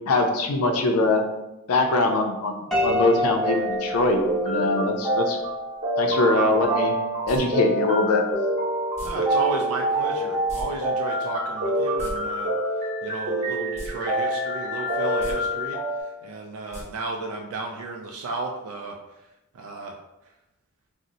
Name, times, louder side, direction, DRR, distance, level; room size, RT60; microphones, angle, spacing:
voice 1, 0.1-1.2 1.7-5.4 6.0-7.0 7.3-8.2, left 2 dB, 80° left, 4 dB, 0.5 m, -22 dB
Piano, 2.7-4.9, left 1 dB, ahead, 0.4 m, -28 dB
sound 1, 2.7-16.0, right 1 dB, 40° right, 1.0 m, -27 dB
sound 2, 7.3-7.4 9.0-9.1 10.5-10.7 10.9-11.0 11.8-12.1 13.7-13.9 14.3-14.4 15.1-15.3 16.7-16.8 17.2-17.3, equal, 30° left, 0.7 m, -36 dB
voice 2, 9.0-12.5 13.0-19.2 19.5-20.0 20.2-20.3, right 3 dB, 80° right, 1 dB, 0.3 m, -33 dB
2.6 x 2.0 x 3.9 m, 0.94 s
head